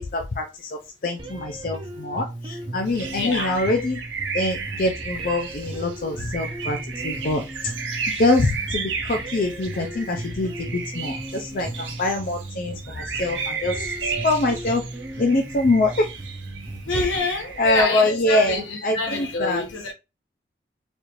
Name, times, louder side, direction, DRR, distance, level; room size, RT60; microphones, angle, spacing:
voice 1, 0.0-4.0 4.3-6.8 7.0-7.4 8.2-14.8 15.2-16.1 16.9-17.2 17.6-19.6, left 2 dB, 45° left, 0.5 m, -24 dB
sound 1, 1.2-17.2, right 1 dB, 25° right, 0.5 m, -36 dB
sound 2, 2.9-17.8, right 5 dB, 80° right, 0.8 m, -34 dB
voice 2, 3.1-3.6 7.9-8.2 13.3-13.4 16.9-19.9, left 2 dB, 80° left, 1.0 m, -27 dB
4.1 x 2.5 x 3.0 m
head